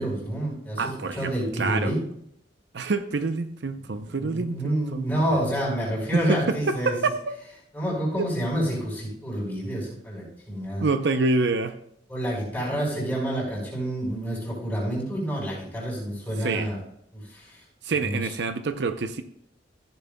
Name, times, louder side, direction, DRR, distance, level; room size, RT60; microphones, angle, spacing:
voice 1, 0.0-0.8 1.2-2.0 3.9-6.9 7.7-10.8 12.1-16.8 17.1-17.6 18.0-18.2, right 1 dB, 10° left, -5 dB, 4.6 m, -28 dB
voice 2, 0.8-1.9 2.7-5.5 6.1-7.3 8.2-8.3 10.8-11.8 16.4-16.7 17.8-19.2, right 3 dB, 70° right, 10 dB, 0.6 m, -27 dB
14.5 x 10.5 x 2.2 m, 0.72 s
head